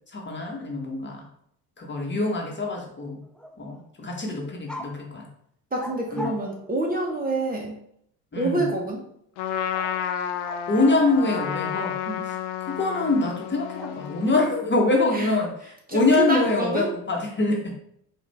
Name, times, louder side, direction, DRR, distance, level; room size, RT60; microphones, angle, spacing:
voice 1, 0.1-1.2 1.8-3.2 3.6-5.3 6.1-6.3 8.3-8.7 10.7-12.0 12.2-15.5 15.9-17.7, left 2 dB, 25° left, 0 dB, 1.2 m, -24 dB
sound 1, 3.2-3.8 4.1-4.3 4.7-5.0 5.8-7.4 9.7-11.9 13.8-14.4, equal, ahead, 0.3 m, -42 dB
voice 2, 5.7-7.7 8.3-9.0 12.1-12.3 15.1-15.3 15.9-16.9, right 2 dB, 20° right, -1 dB, 1.0 m, -27 dB
Trumpet, 9.4-14.6, left 9 dB, 80° left, 0.6 m, -31 dB
4.8 x 2.6 x 3.4 m, 0.71 s
hypercardioid pair, 65°, 45 cm